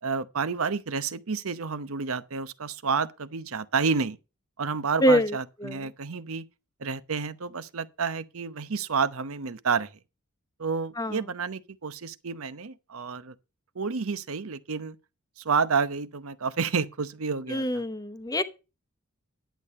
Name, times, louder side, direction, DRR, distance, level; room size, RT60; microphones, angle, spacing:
voice 1, 0.0-4.2 4.6-6.5 6.8-9.9 10.6-13.3 13.7-15.0 15.4-17.8, right 5 dB, 75° right, 0.8 m, -30 dB
voice 2, 5.0-5.3 5.6-5.8 11.0-11.1 17.5-18.4, equal, 15° left, 0.9 m, -24 dB
10.5 x 8.4 x 4.3 m
head